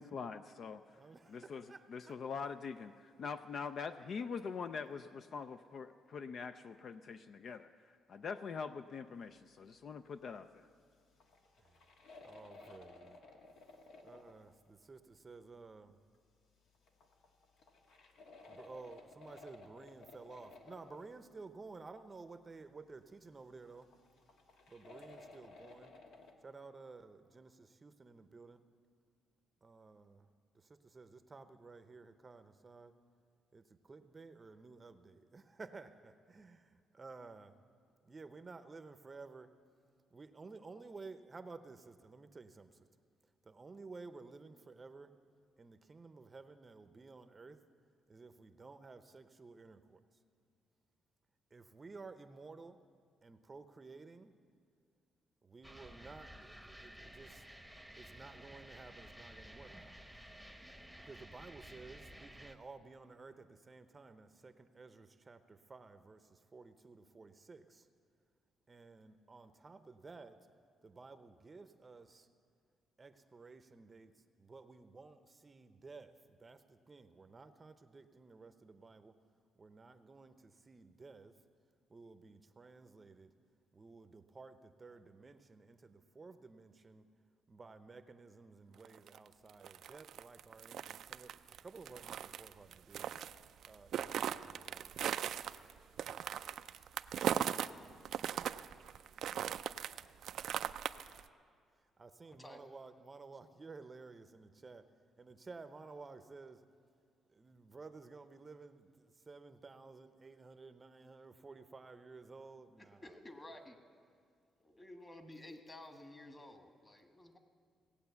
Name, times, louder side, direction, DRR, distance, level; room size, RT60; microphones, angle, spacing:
voice 1, 0.0-0.8 1.3-1.6 1.9-7.7 8.1-10.7, left 5 dB, 55° left, 10 dB, 0.4 m, -43 dB
voice 2, 1.0-2.2 3.2-3.3 11.6-11.9 12.2-13.2 14.0-16.0 18.5-23.9 24.7-25.9 26.4-28.6 29.6-30.3 30.5-32.9 33.5-37.5 38.0-39.5 40.1-42.9 43.4-45.1 45.6-47.6 48.1-50.0 51.5-52.8 53.2-54.3 55.4-57.5 57.9-59.8 60.3-60.4 61.0-67.9 68.7-70.4 70.8-72.3 73.0-79.2 79.6-81.3 81.9-83.3 83.7-87.1 87.5-91.3 91.6-93.1 93.6-95.0 97.2-98.8 101.8-104.9 105.2-106.6 107.3-113.2, right 4 dB, 30° right, 10 dB, 0.6 m, -54 dB
sound 1, 10.6-10.7 11.0-14.6 16.7-21.4 23.7-26.3, left 3 dB, 80° left, 1.4 m, -57 dB
sound 2, 55.6-62.6, equal, ahead, 0.9 m, -54 dB
sound 3, 88.8-97.7 98.1-101.2, right 9 dB, 70° right, 0.3 m, -39 dB
voice 3, 102.3-102.6 113.0-113.8 114.6-117.4, left 1 dB, 25° left, 5 dB, 1.6 m, -53 dB
17.5 x 8.6 x 6.9 m, 2.2 s
cardioid pair, 90°, 0 cm